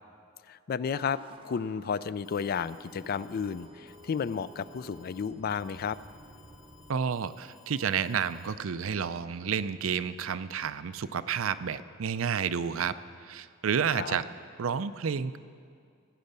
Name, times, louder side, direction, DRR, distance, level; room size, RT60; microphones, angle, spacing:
voice 1, 0.5-1.2 1.4-6.0 14.0-14.2, left 6 dB, 50° left, 16 dB, 0.3 m, -32 dB
sound 1, 0.9-6.9, right 2 dB, 25° right, 0.7 m, -52 dB
Alarm, 2.2-8.5, left 7 dB, 75° left, 1.5 m, -59 dB
voice 2, 6.9-12.9 13.2-14.2 14.6-15.4, right 7 dB, 85° right, 13 dB, 0.5 m, -30 dB
16.5 x 9.2 x 6.8 m, 2.2 s
head